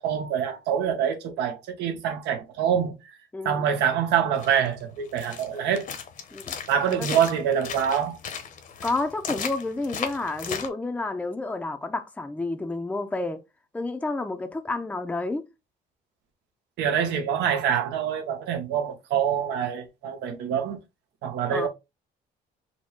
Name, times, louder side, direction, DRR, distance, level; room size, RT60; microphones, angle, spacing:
voice 1, 0.0-2.9 3.4-5.9 6.7-8.2 16.8-20.8 21.2-21.7, right 8 dB, 85° right, 1.2 m, -25 dB
voice 2, 3.3-3.7 6.3-6.5 7.0-7.2 8.8-13.4 13.7-15.4 21.5-21.7, left 2 dB, 10° left, 0.6 m, -30 dB
sound 1, 4.3-10.7, left 7 dB, 50° left, 0.9 m, -36 dB
4.3 x 2.2 x 4.5 m
cardioid pair, 110°, 17 cm